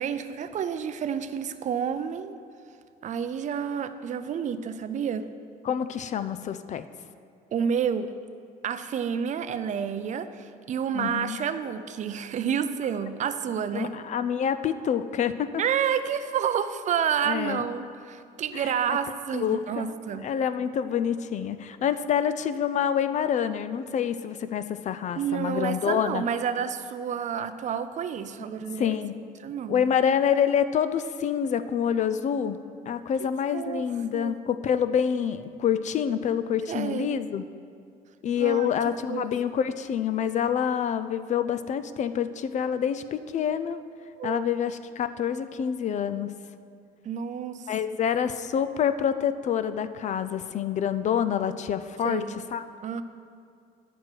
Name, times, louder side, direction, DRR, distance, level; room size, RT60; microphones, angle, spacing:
voice 1, 0.0-2.4 3.0-5.3 7.5-8.1 8.6-14.0 15.6-20.3 25.2-29.0 29.4-29.8 33.5-33.8 34.1-34.4 36.7-37.2 38.4-38.7 39.1-39.3 44.2-44.4 47.0-47.7 52.0-52.3 52.8-53.0, right 8 dB, 45° right, 11 dB, 0.5 m, -29 dB
voice 2, 5.6-6.8 10.9-11.4 13.7-15.5 17.3-17.6 18.5-19.0 19.3-19.9 20.2-26.2 28.8-29.2 29.7-32.6 32.9-37.4 38.2-43.8 44.2-46.3 47.7-52.2 52.5-52.6, left 8 dB, 45° left, 12 dB, 0.4 m, -27 dB
11.0 x 6.2 x 4.5 m, 2.4 s
cardioid pair, 110°, 17 cm